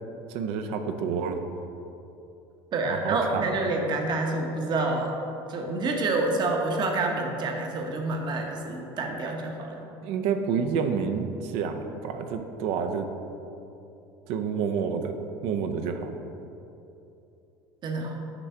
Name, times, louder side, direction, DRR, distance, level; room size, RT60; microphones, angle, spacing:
voice 1, 0.3-1.4 2.9-3.5 10.0-13.1 14.3-16.1, right 6 dB, 70° right, 6 dB, 0.5 m, -29 dB
voice 2, 2.7-5.1 5.5-9.8 17.8-18.2, right 2 dB, 40° right, 2 dB, 0.9 m, -28 dB
6.0 x 3.4 x 5.4 m, 2.9 s
supercardioid pair, 95°, 11 cm